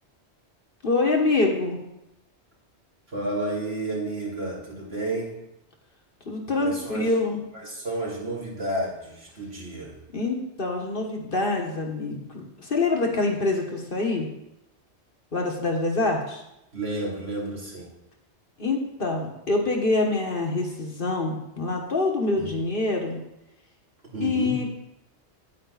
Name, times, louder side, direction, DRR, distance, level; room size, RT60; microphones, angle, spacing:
voice 1, 0.8-1.8 6.2-7.4 10.1-14.3 15.3-16.4 18.6-23.2 24.2-24.7, left 3 dB, 50° left, 1 dB, 1.6 m, -25 dB
voice 2, 3.1-5.3 6.6-7.1 7.5-9.9 16.7-17.9 22.4-22.5 24.1-24.6, right 2 dB, 65° right, -4 dB, 3.2 m, -31 dB
9.7 x 9.1 x 4.0 m, 0.86 s
omnidirectional pair, 1.1 m